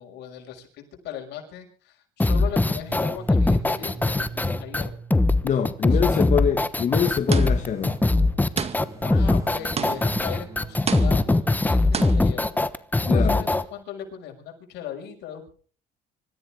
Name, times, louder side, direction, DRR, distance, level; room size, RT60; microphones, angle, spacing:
voice 1, 0.0-4.9 5.9-6.4 9.0-12.6 13.0-15.5, left 9 dB, 85° left, 6.0 m, -38 dB
sound 1, 2.2-13.6, left 2 dB, 10° left, 1.1 m, -21 dB
sound 2, 2.9-6.3 7.1-11.9, right 4 dB, 20° right, 5.0 m, -42 dB
voice 2, 5.4-8.0 13.1-13.4, left 8 dB, 45° left, 1.9 m, -24 dB
sound 3, 7.3-7.8 8.6-9.1 9.8-10.3 10.9-11.4 11.9-12.4, right 6 dB, 40° right, 2.0 m, -30 dB
26.0 x 14.5 x 3.7 m
cardioid pair, 110°, 17 cm